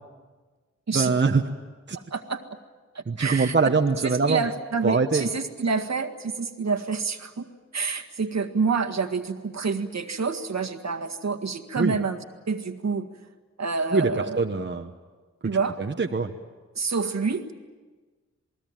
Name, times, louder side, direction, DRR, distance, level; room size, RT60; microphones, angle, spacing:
voice 1, 0.9-1.4 1.9-2.0 3.1-4.4 4.8-5.2 11.8-12.0 13.9-14.9 15.8-16.3, right 4 dB, 40° right, 3 dB, 1.2 m, -23 dB
voice 2, 1.9-2.4 3.0-3.6 4.0-7.5 7.7-13.1 13.6-14.4 15.4-15.8 16.8-17.6, right 4 dB, 65° right, 6 dB, 1.8 m, -28 dB
28.5 x 19.5 x 9.0 m, 1.3 s
wide cardioid pair, 80°, 29 cm